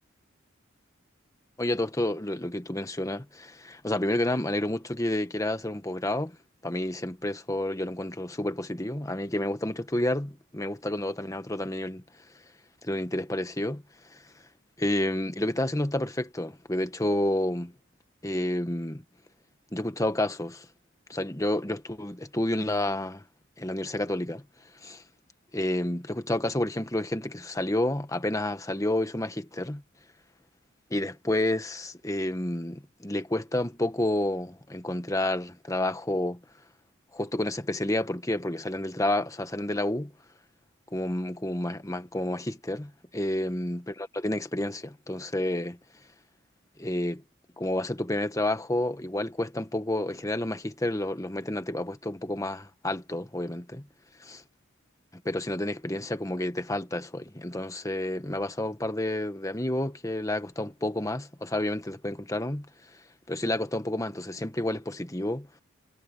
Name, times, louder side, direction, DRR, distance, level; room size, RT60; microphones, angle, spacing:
voice 1, 1.6-6.4 6.6-12.0 12.8-13.8 14.1-14.2 14.8-17.7 18.2-19.0 19.7-20.7 21.1-23.2 23.6-24.4 24.8-25.0 25.5-29.8 30.9-36.4 37.1-40.1 40.9-45.8 46.8-47.2 47.6-53.9 54.3-54.4 55.1-63.0 63.3-65.5, left 1 dB, 15° left, 1.4 m, -30 dB
head